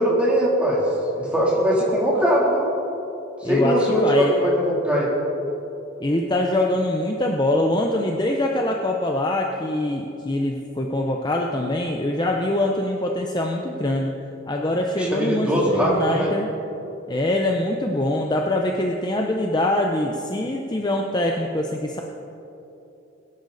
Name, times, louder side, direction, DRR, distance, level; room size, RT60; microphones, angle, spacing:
voice 1, 0.0-2.7 3.4-5.1 15.0-16.3, equal, 5° right, -6 dB, 3.2 m, -21 dB
voice 2, 3.4-4.3 6.0-14.1 14.5-16.5 17.1-22.0, left 1 dB, 20° left, 1 dB, 0.7 m, -23 dB
21.0 x 10.5 x 4.1 m, 2.9 s
head